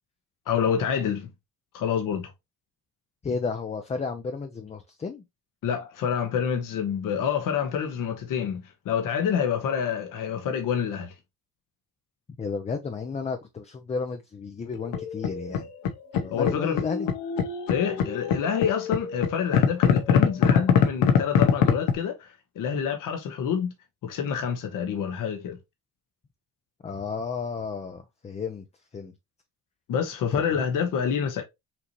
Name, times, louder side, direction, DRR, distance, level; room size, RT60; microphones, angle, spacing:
voice 1, 0.5-1.3 1.7-2.3 5.6-11.1 16.3-16.8 17.7-23.7 24.0-25.6 29.9-31.4, left 7 dB, 70° left, 1.2 m, -27 dB
voice 2, 3.2-5.2 12.4-15.7 16.1-17.1 26.8-28.6 28.9-29.1 30.6-30.7, left 5 dB, 20° left, 0.5 m, -32 dB
sound 1, 14.7-21.9, left 8 dB, 90° left, 1.0 m, -22 dB
5.9 x 2.7 x 3.0 m
cardioid pair, 130°, 33 cm